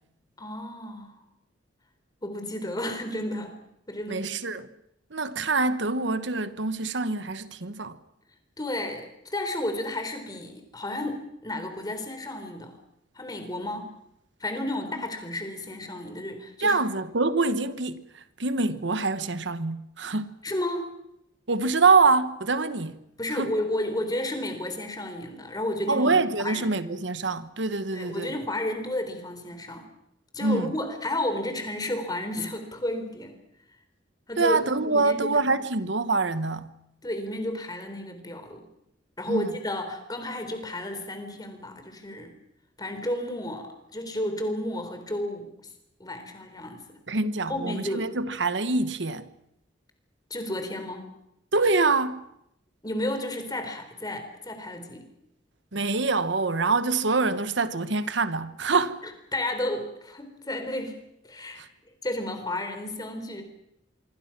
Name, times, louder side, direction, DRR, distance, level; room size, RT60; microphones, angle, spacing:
voice 1, 0.4-1.2 2.2-3.6 3.9-4.3 8.6-12.7 13.2-13.9 14.4-16.8 20.4-20.9 23.2-26.6 27.9-29.9 30.3-33.4 34.3-35.3 37.0-38.7 39.2-42.3 42.8-45.7 46.0-46.8 47.5-48.1 50.3-51.1 52.8-55.1 59.0-61.0 61.2-61.6 62.0-63.4, left 1 dB, 20° left, 3.8 m, -32 dB
voice 2, 4.1-4.7 5.1-8.0 16.6-20.4 21.5-22.9 23.3-23.5 25.9-28.3 30.4-30.7 34.4-36.7 39.3-39.5 47.1-49.3 51.5-52.2 55.7-59.0 61.6-61.7, right 3 dB, 75° right, 1.2 m, -25 dB
26.0 x 24.0 x 6.0 m
head